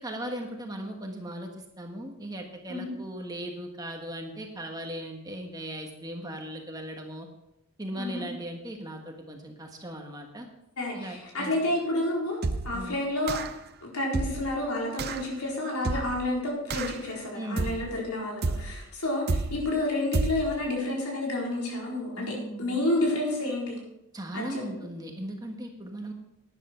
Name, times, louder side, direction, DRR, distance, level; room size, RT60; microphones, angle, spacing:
voice 1, 0.0-7.3 7.8-10.5 10.9-11.5 12.7-13.0 17.3-17.7 22.1-22.8 24.1-26.1, right 1 dB, 15° right, 2 dB, 1.4 m, -38 dB
voice 2, 10.8-12.4 12.6-13.4 13.8-23.8 24.3-24.6, left 1 dB, 90° left, -3 dB, 4.3 m, -30 dB
sound 1, 12.4-12.8 13.3-13.7 14.1-14.5 15.0-15.3 15.8-16.3 16.7-17.1 17.6-18.0 18.4-18.8 19.3-19.7 20.1-20.6, right 3 dB, 45° right, 0.6 m, -30 dB
12.0 x 10.5 x 4.5 m, 0.84 s
head